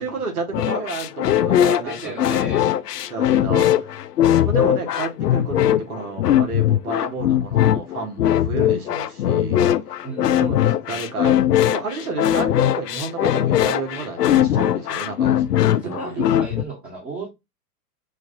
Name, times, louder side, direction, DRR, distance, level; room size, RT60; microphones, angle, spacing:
voice 1, 0.0-2.8 3.1-3.9 4.4-9.7 10.4-11.4 11.6-16.3, right 4 dB, 65° right, 1.7 m, -31 dB
sound 1, 0.5-16.6, left 11 dB, 80° left, 0.5 m, -20 dB
voice 2, 1.8-2.7 3.4-4.0 10.0-11.0 15.8-17.3, right 3 dB, 20° right, 1.3 m, -35 dB
6.2 x 2.5 x 2.6 m
figure-of-eight pair, 105°, 47 cm